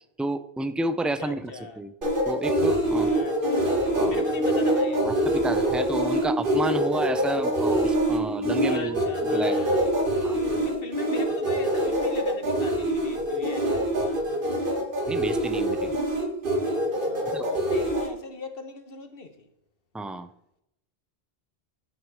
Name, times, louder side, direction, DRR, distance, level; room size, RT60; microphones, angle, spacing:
voice 1, 0.2-1.9 2.3-3.1 4.0-4.2 5.0-9.0 9.3-9.8 10.2-10.4 15.1-16.0 17.3-17.7 19.9-20.3, right 2 dB, ahead, 0.3 m, -31 dB
voice 2, 1.2-1.8 2.9-5.2 8.6-14.2 17.0-19.5, left 3 dB, 65° left, 1.4 m, -40 dB
sound 1, 2.0-18.1, right 1 dB, 55° right, 2.0 m, -25 dB
sound 2, 2.8-10.6, equal, 15° right, 5.2 m, -32 dB
14.0 x 6.5 x 4.7 m
omnidirectional pair, 1.1 m